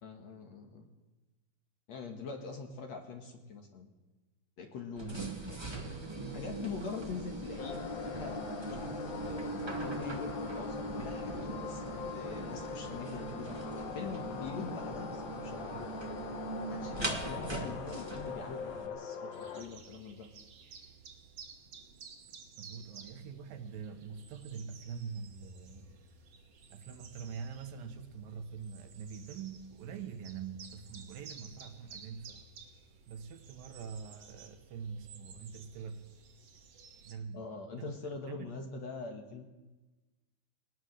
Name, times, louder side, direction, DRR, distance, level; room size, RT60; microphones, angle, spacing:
voice 1, 0.0-0.9 1.9-3.9 4.6-5.4 6.3-13.6 13.9-15.7 16.7-20.3 37.3-39.4, left 4 dB, 55° left, 3 dB, 2.4 m, -43 dB
sound 1, 5.0-18.9, right 2 dB, 20° right, 0.7 m, -41 dB
voice 2, 5.0-6.6 22.6-26.0 26.7-32.5 33.1-36.1 37.0-37.9 38.3-38.5, right 6 dB, 70° right, 7 dB, 2.8 m, -44 dB
sound 2, 7.6-19.6, left 7 dB, 70° left, 3.1 m, -43 dB
sound 3, 19.3-37.1, right 5 dB, 50° right, 2.2 m, -54 dB
21.0 x 19.0 x 6.6 m, 1.2 s
omnidirectional pair, 4.4 m